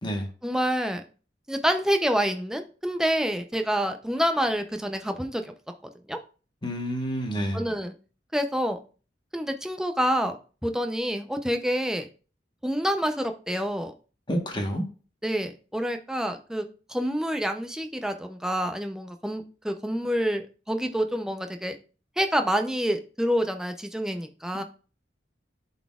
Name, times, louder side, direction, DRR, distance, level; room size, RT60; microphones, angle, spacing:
voice 1, 0.4-1.0 1.5-5.4 6.1-6.2 7.5-7.9 8.3-8.8 9.3-10.4 10.6-12.1 12.6-13.9 15.2-16.6 16.9-21.8 22.2-24.6, equal, 5° right, 0.5 m, -27 dB
voice 2, 6.6-7.6 14.3-14.8, equal, 25° left, 1.1 m, -28 dB
11.0 x 4.1 x 2.3 m
head